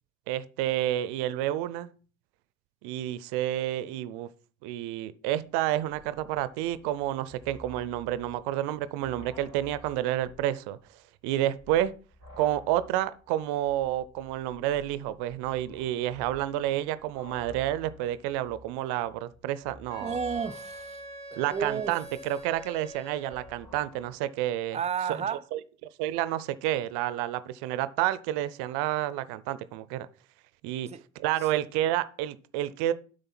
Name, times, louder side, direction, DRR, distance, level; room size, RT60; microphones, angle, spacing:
voice 1, 0.3-1.9 2.8-4.3 4.6-10.8 11.2-11.9 12.4-20.1 21.4-24.8 25.3-25.6 26.0-30.1 30.6-30.9 31.2-32.9, right 13 dB, 75° right, 0.6 m, -30 dB
sound 1, 5.9-10.5 10.8-10.9 11.5-24.1, left 1 dB, 55° left, 4.2 m, -52 dB
Wind instrument woodwind instrument, 19.9-23.6, right 1 dB, 90° left, 1.7 m, -44 dB
voice 2, 20.0-21.0 21.3-21.9 24.7-25.4 30.9-31.0 31.5-31.6, right 6 dB, 15° right, 0.5 m, -32 dB
8.0 x 5.1 x 5.8 m
hypercardioid pair, 45°, 40 cm